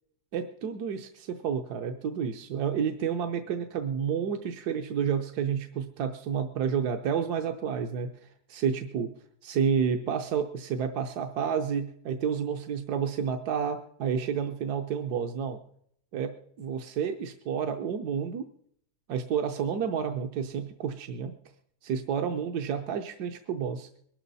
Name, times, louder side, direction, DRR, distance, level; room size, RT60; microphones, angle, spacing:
voice 1, 0.3-8.1 8.5-9.1 9.4-15.6 16.1-16.3 16.6-18.5 19.1-21.3 21.8-23.9, right 7 dB, 75° right, 6 dB, 1.4 m, -30 dB
22.0 x 12.5 x 4.1 m, 0.68 s
omnidirectional pair, 1.7 m